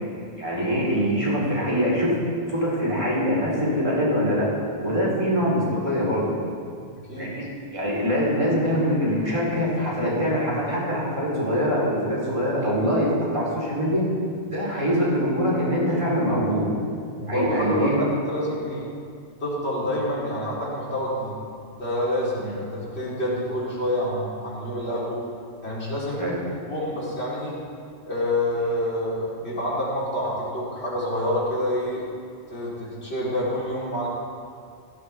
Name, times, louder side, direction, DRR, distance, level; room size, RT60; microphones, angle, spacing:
voice 1, 0.4-2.2 2.5-4.5 4.8-6.3 7.2-7.4 7.7-14.1 14.5-16.7 17.3-18.0 22.4-22.6 26.2-26.4, equal, 30° right, -6 dB, 4.2 m, -23 dB
voice 2, 17.2-18.9 19.4-21.3 21.7-25.1 25.6-26.2 26.7-27.5 28.0-32.1 32.5-34.1, left 1 dB, 90° left, -7 dB, 4.2 m, -27 dB
16.5 x 15.5 x 3.6 m, 2.2 s
omnidirectional pair, 1.1 m